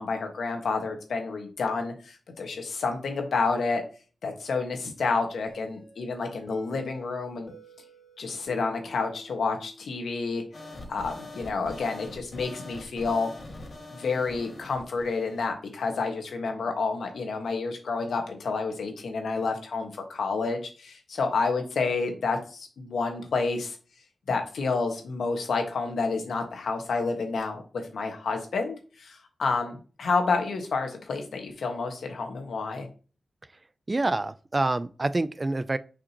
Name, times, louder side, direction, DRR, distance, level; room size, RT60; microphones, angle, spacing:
voice 1, 0.0-3.8 4.2-7.5 8.2-10.4 10.9-13.3 13.9-23.8 24.3-32.9, left 4 dB, 85° left, 1.5 m, -29 dB
sound 1, 5.5-10.2, equal, 20° left, 3.4 m, -50 dB
sound 2, 10.5-15.5, left 2 dB, 50° left, 2.0 m, -43 dB
voice 2, 33.9-35.8, right 2 dB, 30° right, 0.4 m, -27 dB
6.9 x 5.2 x 2.9 m
wide cardioid pair, 90°, 0 cm